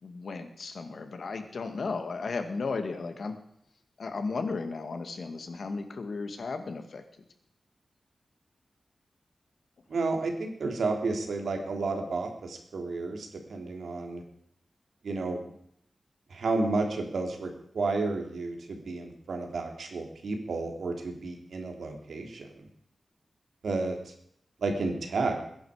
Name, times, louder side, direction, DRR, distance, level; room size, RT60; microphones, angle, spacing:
voice 1, 0.0-3.4 4.0-7.0, left 4 dB, 65° left, 7 dB, 2.1 m, -35 dB
voice 2, 9.9-14.2 15.0-15.4 16.3-22.7 23.6-24.1 24.6-25.4, right 3 dB, 85° right, 4 dB, 3.1 m, -31 dB
21.0 x 11.0 x 5.0 m, 0.72 s
wide cardioid pair, 135°, 0 cm